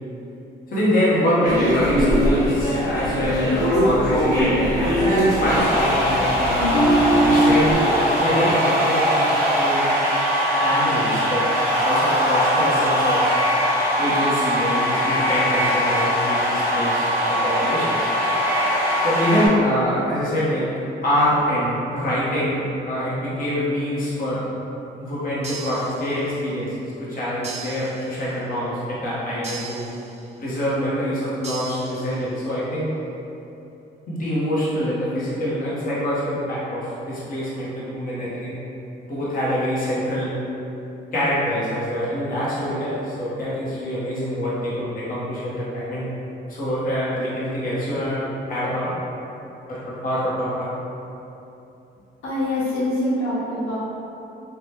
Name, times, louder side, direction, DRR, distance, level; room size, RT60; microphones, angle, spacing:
voice 1, 0.7-9.9 10.6-11.4 11.8-13.2 14.0-18.1 19.0-20.7 21.0-24.4 25.0-29.9 30.4-32.9 34.1-38.5 39.1-40.3 41.1-46.1 46.5-48.2 48.5-48.9 49.7-50.7, equal, 45° left, -9 dB, 0.9 m, -25 dB
sound 1, 1.4-7.7, equal, 20° left, 1.0 m, -20 dB
sound 2, 5.4-19.5, equal, 10° right, 1.1 m, -21 dB
sound 3, 25.4-26.5 27.4-28.5 29.4-30.5 31.4-32.5, right 5 dB, 35° right, 0.3 m, -38 dB
voice 2, 52.2-53.8, left 1 dB, 85° left, -9 dB, 0.9 m, -24 dB
2.7 x 2.1 x 3.4 m, 2.8 s
cardioid pair, 90°, 20 cm